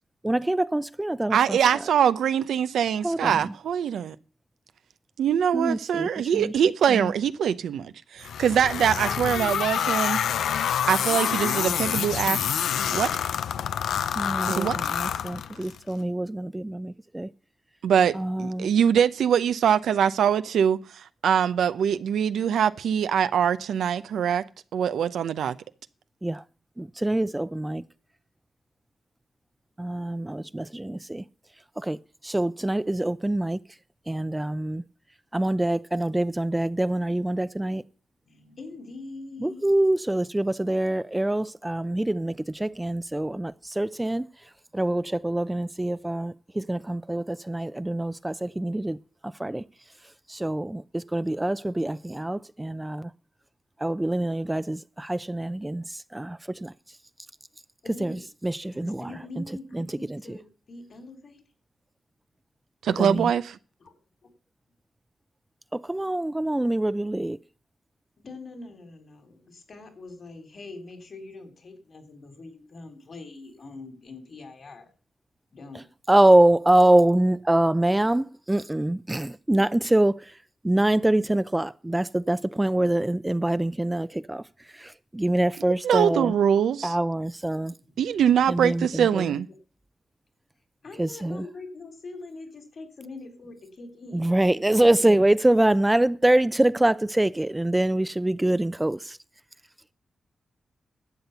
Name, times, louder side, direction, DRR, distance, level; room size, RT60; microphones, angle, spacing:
voice 1, 0.2-1.6 3.0-3.3 5.5-6.4 14.2-17.3 18.2-18.7 26.2-26.4 26.8-27.8 29.8-31.2 31.8-32.0 32.2-33.6 34.1-34.8 35.3-37.8 39.4-44.3 44.7-49.0 49.4-49.6 50.3-53.1 53.8-55.8 56.1-56.7 58.0-58.1 58.4-59.0 59.8-59.9 60.1-60.2 63.0-63.3 65.7-67.4 76.1-80.2 80.6-84.4 85.1-86.3 86.8-87.7 88.5-89.3 91.0-91.4 94.1-99.2, right 1 dB, 15° right, 0.6 m, -24 dB
voice 2, 1.3-4.2 5.2-10.2 10.9-12.4 12.9-13.1 14.5-14.8 17.8-18.1 18.4-24.4 24.7-25.6 62.8-63.6 85.8-87.0 88.0-89.5, right 8 dB, 85° right, 0.6 m, -23 dB
sound 1, 8.2-15.8, left 8 dB, 85° left, 0.5 m, -27 dB
voice 3, 38.3-39.7 57.8-58.3 58.7-61.4 63.8-63.9 64.2-64.3 68.2-74.9 75.5-75.9 86.5-86.6 87.8-87.9 89.0-89.1 90.8-94.4, left 3 dB, 60° left, 3.8 m, -43 dB
12.0 x 8.1 x 6.9 m
supercardioid pair, 45°, 0 cm